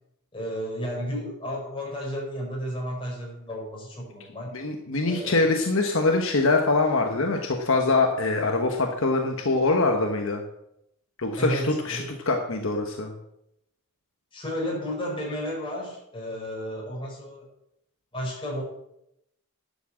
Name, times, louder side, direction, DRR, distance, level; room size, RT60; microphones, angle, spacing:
voice 1, 0.3-4.5 5.1-5.5 11.4-12.1 14.3-17.5 18.1-18.6, equal, 25° left, -2 dB, 4.9 m, -32 dB
voice 2, 4.5-10.4 11.2-13.1, left 3 dB, 65° left, 3 dB, 1.2 m, -24 dB
11.0 x 7.4 x 7.5 m, 0.80 s
head